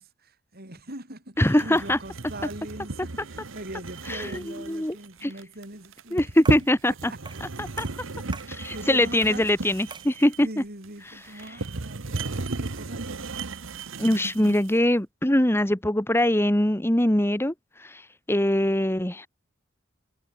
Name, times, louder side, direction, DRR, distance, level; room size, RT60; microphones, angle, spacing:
voice 1, 0.0-6.5 7.1-7.4 8.2-9.5 10.4-13.4, right 1 dB, 50° right, 6.4 m, -42 dB
voice 2, 1.4-2.0 4.1-4.9 5.2-5.3 6.1-7.1 7.6-7.9 8.5-10.5 14.0-19.3, left 1 dB, 10° left, 1.6 m, -23 dB
sound 1, 1.4-14.8, right 3 dB, 65° right, 1.2 m, -34 dB
sound 2, 6.4-6.8 7.3-7.5 7.8-8.6 9.2-9.5 9.9-10.2, right 4 dB, 20° right, 2.6 m, -43 dB
head